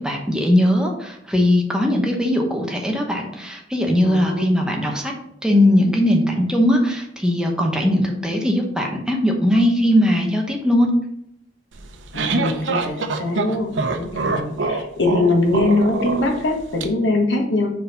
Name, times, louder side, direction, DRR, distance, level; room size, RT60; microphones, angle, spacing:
voice 1, 0.0-5.1 5.4-10.9, left 1 dB, 5° right, 1 dB, 0.9 m, -19 dB
voice 2, 4.0-4.4 12.1-13.7 14.0-17.7, left 2 dB, 70° left, 2 dB, 1.3 m, -22 dB
risa malevola, 11.8-16.8, right 3 dB, 85° right, 0.7 m, -25 dB
4.7 x 4.0 x 5.3 m, 0.75 s
head